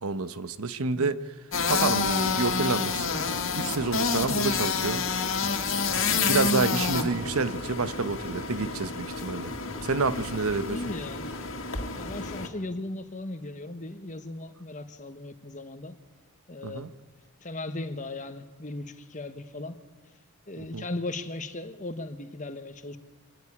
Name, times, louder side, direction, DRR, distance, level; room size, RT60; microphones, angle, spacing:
voice 1, 0.0-1.2 1.7-3.1 3.5-5.1 6.0-9.5 9.8-10.8 16.6-16.9 20.6-20.9, right 3 dB, 75° right, 1.0 m, -29 dB
voice 2, 0.9-1.2 10.7-11.3 12.0-15.9 16.5-16.9 17.4-19.7 20.5-23.0, left 2 dB, 35° left, 1.3 m, -37 dB
sound 1, 1.5-12.5, left 5 dB, 60° left, 2.3 m, -29 dB
26.5 x 13.5 x 9.8 m
head